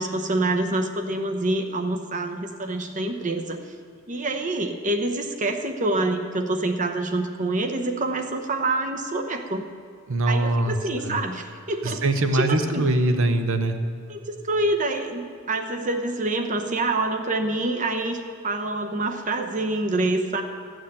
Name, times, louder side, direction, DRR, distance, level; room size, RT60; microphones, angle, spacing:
voice 1, 0.0-3.6 4.1-9.7 10.3-12.0 12.3-12.9 14.1-18.2 18.4-20.4, right 2 dB, 35° right, 5 dB, 0.9 m, -26 dB
voice 2, 10.1-10.7 11.0-11.2 11.8-13.8, right 2 dB, 65° right, 7 dB, 0.9 m, -22 dB
14.0 x 6.4 x 8.8 m, 2.2 s
head